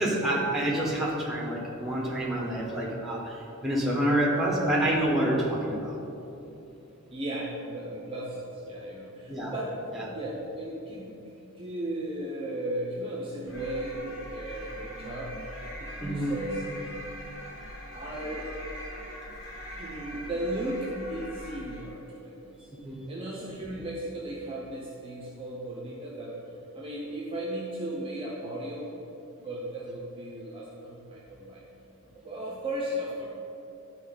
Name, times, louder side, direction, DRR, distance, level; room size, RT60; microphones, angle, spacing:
voice 1, 0.0-6.0 9.3-9.5 9.9-10.1 14.9-15.0 16.0-16.3 22.8-23.0, right 1 dB, ahead, -4 dB, 1.3 m, -27 dB
voice 2, 7.1-15.4 15.8-16.6 17.9-18.5 19.8-22.7 23.1-26.4 26.7-29.0 29.4-31.6 32.1-33.3, right 1 dB, 25° right, -4 dB, 0.8 m, -36 dB
sound 1, 13.5-22.0, equal, 65° left, 1.4 m, -42 dB
11.5 x 4.3 x 3.9 m, 2.9 s
head